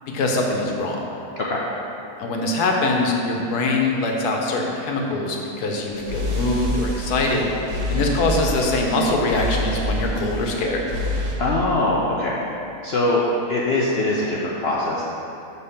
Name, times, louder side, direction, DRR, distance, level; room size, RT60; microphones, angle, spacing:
voice 1, 0.1-1.0 2.2-7.5 7.9-10.9, left 2 dB, 90° left, 0 dB, 1.4 m, -23 dB
sound 1, 5.9-11.3, left 1 dB, 55° right, 1.4 m, -27 dB
voice 2, 11.4-12.4 12.8-13.2 13.5-15.0, left 2 dB, 55° left, -5 dB, 0.8 m, -22 dB
6.9 x 4.2 x 5.7 m, 2.9 s
omnidirectional pair, 1.6 m